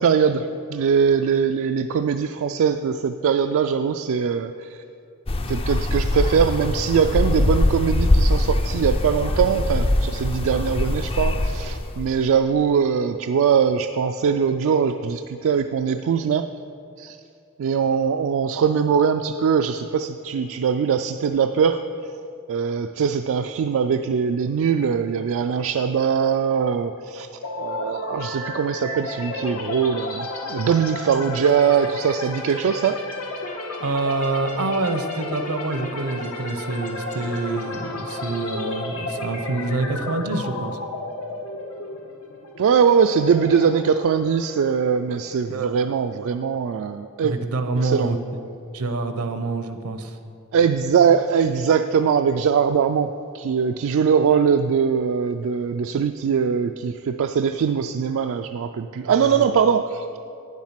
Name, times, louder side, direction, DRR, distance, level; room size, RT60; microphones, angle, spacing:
voice 1, 0.0-4.8 5.5-16.5 17.0-17.2 17.6-22.2 22.5-27.3 27.6-33.0 42.6-47.3 47.8-48.1 50.5-60.2, right 6 dB, 65° right, 7 dB, 0.3 m, -21 dB
sound 1, 5.3-12.1, left 1 dB, 25° left, 0.4 m, -22 dB
sound 2, 27.4-45.2, left 2 dB, 85° left, 1.3 m, -33 dB
voice 2, 33.8-40.8 45.5-45.9 47.2-48.2 48.7-50.2 59.0-59.5, right 3 dB, 80° right, 8 dB, 0.7 m, -26 dB
9.4 x 7.4 x 5.8 m, 2.5 s
head